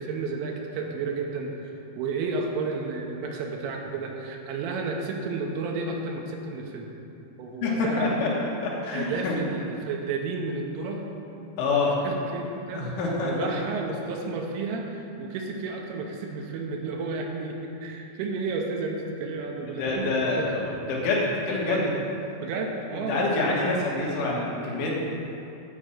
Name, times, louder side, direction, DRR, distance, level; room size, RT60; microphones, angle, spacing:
voice 1, 0.0-6.9 7.4-8.1 8.9-11.1 11.7-12.9 13.2-20.6 21.7-22.0 22.4-23.3, right 4 dB, 85° right, 1 dB, 3.2 m, -32 dB
voice 2, 7.6-9.4 11.6-11.9 12.7-13.5 19.8-21.8 22.9-25.0, left 3 dB, 70° left, -4 dB, 3.7 m, -26 dB
10.0 x 5.1 x 7.6 m, 2.7 s
omnidirectional pair, 5.9 m